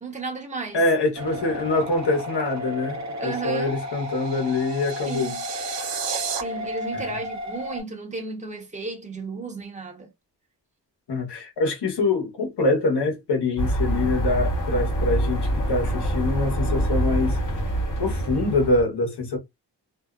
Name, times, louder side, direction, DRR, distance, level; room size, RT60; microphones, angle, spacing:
voice 1, 0.0-0.8 3.2-3.8 5.0-5.5 6.3-10.1, right 4 dB, 15° right, 0.9 m, -34 dB
voice 2, 0.7-5.3 6.9-7.1 11.1-17.4 18.0-19.4, left 2 dB, 70° left, 1.1 m, -24 dB
sound 1, 1.2-7.8, left 1 dB, 40° right, 0.8 m, -33 dB
sound 2, 3.7-6.4, right 7 dB, 80° right, 0.6 m, -33 dB
sound 3, 13.6-18.8, right 1 dB, 45° left, 1.3 m, -25 dB
2.7 x 2.1 x 2.4 m
cardioid pair, 65°, 42 cm